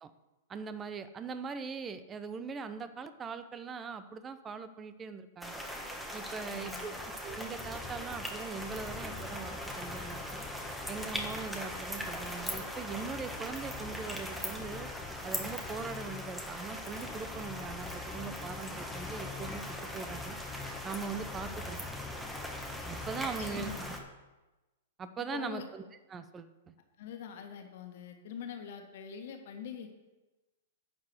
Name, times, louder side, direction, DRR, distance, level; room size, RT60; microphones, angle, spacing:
voice 1, 0.5-5.6 6.1-6.9 7.2-10.4 10.9-14.9 15.2-20.4 20.8-21.8 22.8-23.9 25.0-25.8 26.1-26.7, right 5 dB, 20° right, 12 dB, 0.7 m, -41 dB
sound 1, 5.4-24.0, equal, 5° right, 1.4 m, -41 dB
voice 2, 6.4-7.0 23.2-23.8 25.2-25.7 27.0-29.9, left 7 dB, 60° left, 4 dB, 1.8 m, -44 dB
sound 2, 6.7-24.1, left 5 dB, 20° left, 0.8 m, -47 dB
11.5 x 4.7 x 8.0 m, 1.1 s
hypercardioid pair, 125°, 0 cm